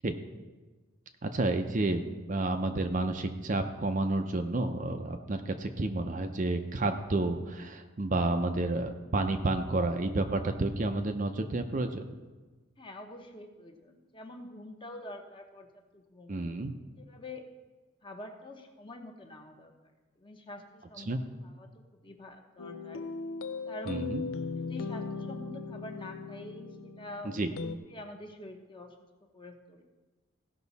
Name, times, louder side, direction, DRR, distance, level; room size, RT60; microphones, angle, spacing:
voice 1, 1.2-12.2 16.3-16.8 21.1-21.2 23.9-24.2 27.2-27.5, right 2 dB, 40° right, 6 dB, 0.6 m, -30 dB
voice 2, 12.8-15.7 15.9-16.4 17.0-17.4 18.0-19.7 20.2-21.7 22.0-23.0 23.7-24.3 24.6-28.9 29.3-29.8, left 2 dB, 25° left, 3 dB, 0.9 m, -46 dB
sound 1, 22.6-27.8, left 4 dB, 85° left, 0.5 m, -38 dB
16.0 x 6.0 x 4.1 m, 1.3 s
head